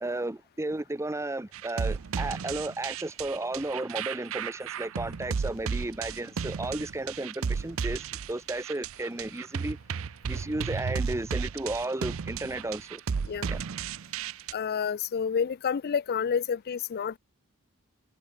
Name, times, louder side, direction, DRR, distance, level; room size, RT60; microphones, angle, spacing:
voice 1, 0.0-9.8 10.3-13.0 13.5-13.6, right 2 dB, 15° right, 0.7 m, -33 dB
sound 1, 1.5-14.5, right 6 dB, 70° right, 0.5 m, -34 dB
voice 2, 14.5-17.2, left 7 dB, 45° left, 0.4 m, -29 dB
head